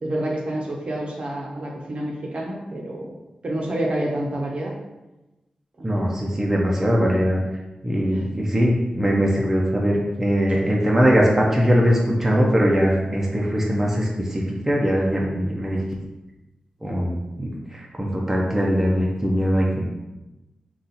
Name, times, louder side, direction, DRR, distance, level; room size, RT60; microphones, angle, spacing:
voice 1, 0.0-3.1 3.4-4.7 5.8-6.3 8.1-8.3 15.2-15.5, right 1 dB, 50° right, -1 dB, 0.8 m, -29 dB
voice 2, 5.8-7.4 7.8-15.8 16.8-19.9, equal, 10° right, -3 dB, 0.6 m, -21 dB
4.1 x 2.4 x 4.0 m, 1.0 s
wide cardioid pair, 105°, 2 cm